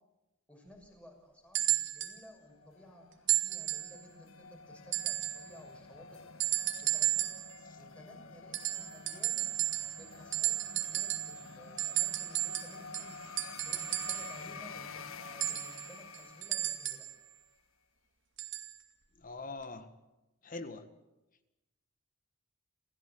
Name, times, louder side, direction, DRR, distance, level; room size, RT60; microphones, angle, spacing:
voice 1, 0.5-3.1 3.4-6.1 6.8-7.3 7.8-9.5 9.9-13.1 13.6-17.0, equal, 5° left, 2 dB, 6.3 m, -55 dB
sound 1, 1.5-2.2 3.3-4.0 4.9-5.5 6.4-7.5 8.5-10.1 10.3-11.4 11.8-14.4 15.4-17.1 18.4-18.7 19.6-19.7, right 15 dB, 60° right, 2.4 m, -33 dB
sound 2, 2.6-17.3, left 4 dB, 70° left, 1.6 m, -49 dB
voice 2, 19.2-19.9 20.4-20.9, left 3 dB, 40° left, 10 dB, 1.7 m, -42 dB
28.0 x 16.5 x 8.9 m, 1.0 s
head